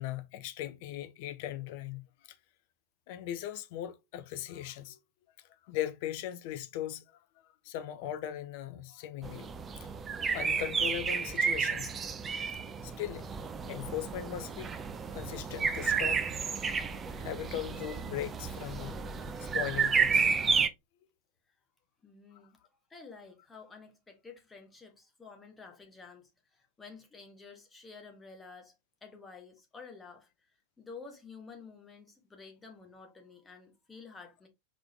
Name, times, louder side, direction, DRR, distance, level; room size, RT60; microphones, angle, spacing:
voice 1, 0.0-2.0 3.1-5.0 5.7-7.0 7.6-9.5 10.3-11.9 12.5-13.3 13.7-14.7 15.1-16.3 17.2-19.0 19.4-20.3, left 12 dB, 50° left, 0.6 m, -38 dB
sound 1, 9.2-20.7, right 5 dB, 20° right, 0.5 m, -31 dB
voice 2, 22.0-22.6 22.9-28.7 29.0-30.5 30.8-34.5, left 4 dB, 15° left, 1.3 m, -51 dB
4.9 x 3.9 x 2.8 m
figure-of-eight pair, 90°, 0 cm